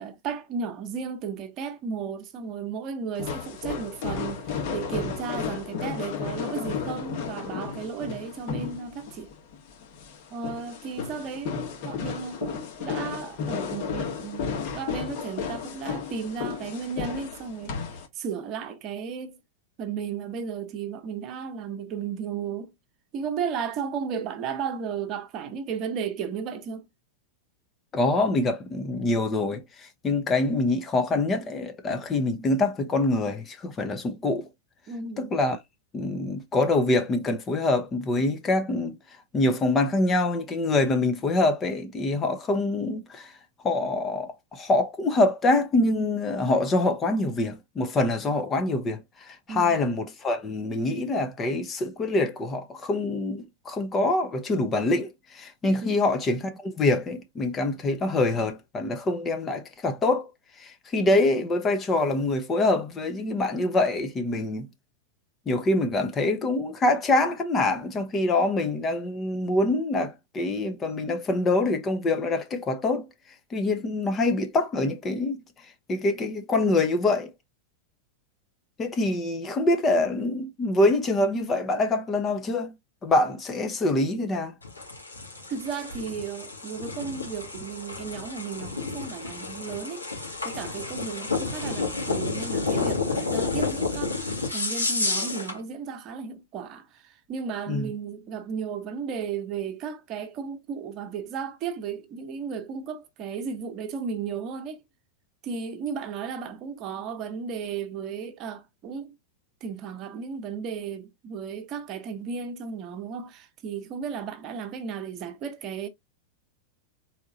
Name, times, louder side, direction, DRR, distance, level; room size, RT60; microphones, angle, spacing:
voice 1, 0.0-9.3 10.3-19.4 19.8-22.7 23.1-26.9 34.9-35.3 49.5-49.8 55.8-56.1 85.5-90.0 90.4-104.8 105.4-109.1 109.6-115.9, right 6 dB, 35° right, 1.1 m, -34 dB
sound 1, 3.2-18.1, left 6 dB, 50° left, 1.6 m, -33 dB
voice 2, 27.9-34.5 35.2-35.6 35.9-39.0 39.3-43.3 43.6-60.3 60.6-64.7 65.5-73.1 73.5-75.4 75.9-77.3 78.8-82.7 83.0-84.5 97.7-97.9, left 2 dB, 25° left, 0.9 m, -25 dB
sound 2, 84.6-95.6, left 3 dB, 80° left, 2.1 m, -30 dB
4.3 x 3.6 x 2.8 m
figure-of-eight pair, 90°, 0 cm